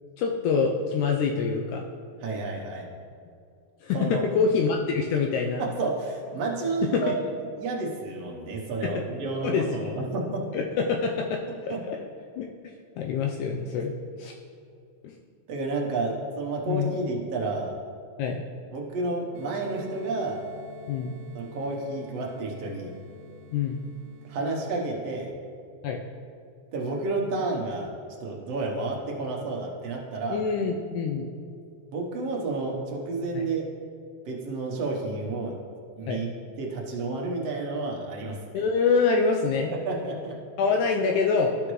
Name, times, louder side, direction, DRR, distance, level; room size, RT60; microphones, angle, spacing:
voice 1, 0.2-1.8 3.8-5.6 6.9-7.1 8.8-9.0 9.4-9.9 10.5-12.0 12.4-12.5 13.0-14.3 16.7-16.9 18.2-18.4 20.9-21.1 23.5-23.8 25.8-26.0 30.3-31.3 33.4-33.5 36.1-36.2 38.5-39.7 40.6-41.6, left 5 dB, 80° left, 1 dB, 2.0 m, -25 dB
voice 2, 2.2-2.9 3.9-4.3 5.6-7.1 7.6-10.4 11.7-11.8 15.5-17.8 18.7-20.4 21.4-22.9 24.3-25.3 26.7-27.9 28.2-30.4 31.9-33.7 34.3-35.5 36.0-36.3 36.6-38.4 39.7-40.4, right 3 dB, 65° right, -1 dB, 1.9 m, -30 dB
sound 1, 19.3-24.3, left 1 dB, 80° right, 2.3 m, -47 dB
13.0 x 5.1 x 3.1 m, 2.4 s
omnidirectional pair, 3.5 m